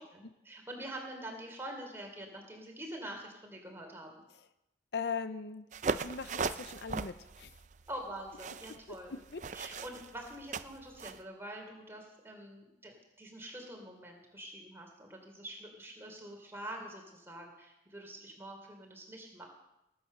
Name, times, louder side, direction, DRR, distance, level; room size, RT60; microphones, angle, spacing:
voice 1, 0.0-4.2 7.9-9.2 9.5-12.9 13.2-19.5, right 1 dB, 15° right, 1 dB, 3.1 m, -45 dB
voice 2, 4.9-5.7 5.9-7.5 9.1-9.4 9.7-9.8, left 5 dB, 65° left, 12 dB, 0.6 m, -39 dB
sound 1, 5.7-11.2, right 4 dB, 40° right, 0.5 m, -39 dB
19.0 x 8.8 x 6.7 m, 0.92 s
head